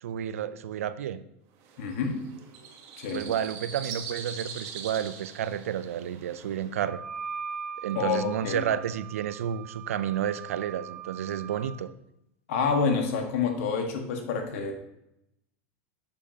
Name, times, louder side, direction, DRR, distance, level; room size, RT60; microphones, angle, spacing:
voice 1, 0.0-1.2 3.1-7.0 7.8-11.9, right 9 dB, 90° right, 14 dB, 0.4 m, -31 dB
sound 1, 1.6-6.8, right 6 dB, 55° right, 1.3 m, -42 dB
voice 2, 1.8-2.2 3.0-3.3 7.9-8.6 12.5-14.7, left 5 dB, 70° left, 3 dB, 1.5 m, -28 dB
Wind instrument woodwind instrument, 6.8-11.8, right 6 dB, 5° right, 0.7 m, -40 dB
7.0 x 6.8 x 2.8 m, 0.82 s
hypercardioid pair, 110°, 7 cm